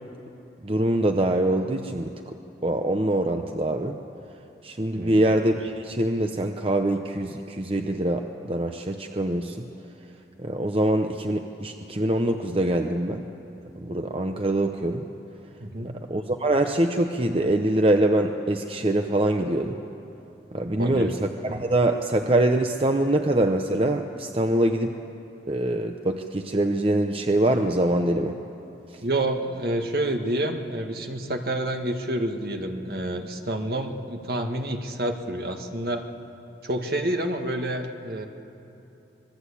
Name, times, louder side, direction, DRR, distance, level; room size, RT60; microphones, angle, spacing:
voice 1, 0.6-2.4 2.6-4.0 4.6-9.6 10.4-13.2 13.8-15.0 15.8-19.8 20.5-25.0 25.5-28.4 28.9-29.0, right 1 dB, 30° right, 5 dB, 0.8 m, -24 dB
voice 2, 4.9-5.2 15.6-16.0 20.8-21.2 29.0-36.0 36.6-38.3, right 1 dB, 55° right, 4 dB, 1.7 m, -28 dB
26.0 x 20.5 x 8.5 m, 2.9 s
head